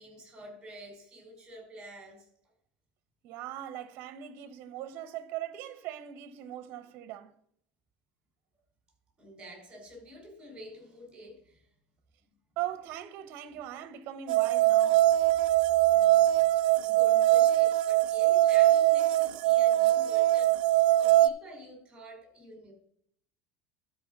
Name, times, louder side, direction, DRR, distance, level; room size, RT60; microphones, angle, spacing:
voice 1, 0.0-2.3 9.2-11.7 15.0-16.5 16.7-22.7, equal, 15° right, 4.6 m, -49 dB
voice 2, 3.2-7.3 12.6-15.1, right 12 dB, 55° right, 1.0 m, -40 dB
sound 1, 14.3-21.3, right 14 dB, 80° right, 0.5 m, -22 dB
12.0 x 4.8 x 5.4 m
supercardioid pair, 135°, 5 cm